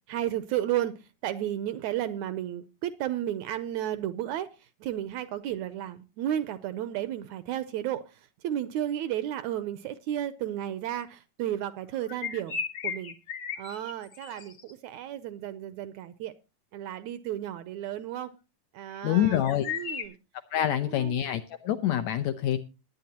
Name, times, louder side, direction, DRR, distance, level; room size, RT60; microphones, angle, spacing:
voice 1, 0.1-13.2 13.6-16.3 16.7-18.3 18.7-20.2 20.6-21.2, right 12 dB, 75° right, 12 dB, 1.8 m, -33 dB
sound 1, 12.0-14.7 18.9-20.1, left 7 dB, 55° left, 1.3 m, -35 dB
voice 2, 19.0-19.7 20.5-22.6, left 11 dB, 75° left, 9 dB, 1.7 m, -26 dB
20.0 x 9.2 x 2.9 m, 0.30 s
omnidirectional pair, 3.8 m